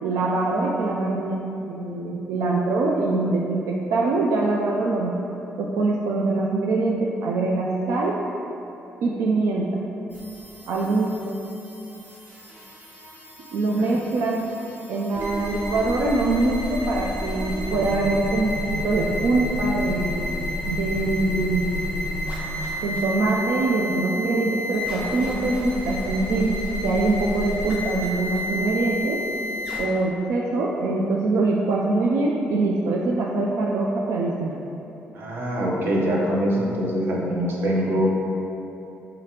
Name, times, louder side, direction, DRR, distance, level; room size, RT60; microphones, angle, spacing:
voice 1, 0.0-5.1 5.6-8.2 9.0-9.8 10.7-11.4 13.5-14.4 14.9-20.2 20.7-21.8 22.8-26.5 26.8-29.2 29.8-34.6, right 3 dB, 90° right, -2 dB, 0.4 m, -23 dB
sound 1, 10.1-29.8, left 1 dB, 35° right, 1.1 m, -31 dB
voice 2, 35.1-38.1, equal, 55° right, -3 dB, 0.8 m, -24 dB
4.9 x 3.8 x 2.9 m, 2.9 s
cardioid pair, 130°, 5 cm